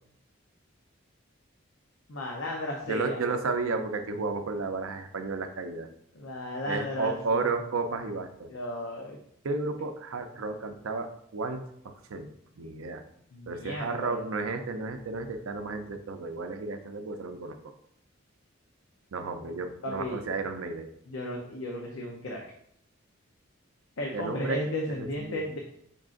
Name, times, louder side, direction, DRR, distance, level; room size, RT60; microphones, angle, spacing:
voice 1, 2.1-3.2 6.2-7.4 8.5-9.2 13.3-14.2 19.8-20.2 21.1-22.4 24.0-25.6, left 1 dB, 70° left, 0 dB, 0.6 m, -34 dB
voice 2, 2.9-5.9 6.7-8.5 9.4-12.3 12.6-13.0 13.5-17.6 19.1-20.9 24.1-24.7 25.0-25.5, right 3 dB, 85° right, 7 dB, 0.5 m, -32 dB
5.3 x 3.7 x 2.5 m, 0.71 s
head